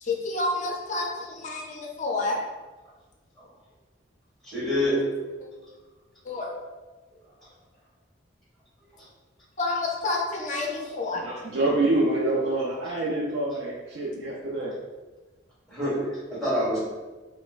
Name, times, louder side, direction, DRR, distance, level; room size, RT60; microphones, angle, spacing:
voice 1, 0.0-2.4 6.2-6.5 9.6-11.2, left 2 dB, 40° left, -1 dB, 0.5 m, -29 dB
voice 2, 4.4-5.0 9.0-9.1 15.7-16.8, equal, ahead, -9 dB, 1.4 m, -26 dB
voice 3, 11.2-14.7, right 2 dB, 85° right, -3 dB, 0.4 m, -26 dB
4.1 x 2.1 x 2.4 m, 1.2 s
head